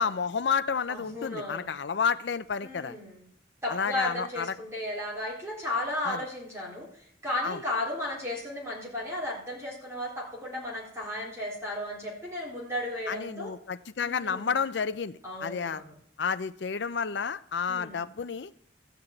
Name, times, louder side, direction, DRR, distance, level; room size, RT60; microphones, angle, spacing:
voice 1, 0.0-3.0 3.7-4.5 6.0-6.2 7.4-7.6 13.1-15.8 16.2-18.5, left 6 dB, 65° left, 11 dB, 0.5 m, -30 dB
voice 2, 0.9-1.7 2.6-3.2 3.6-6.9 7.2-13.5 14.0-14.5 15.2-15.9 17.7-18.1, left 1 dB, 15° right, -4 dB, 3.8 m, -34 dB
14.0 x 6.1 x 8.9 m, 0.66 s
head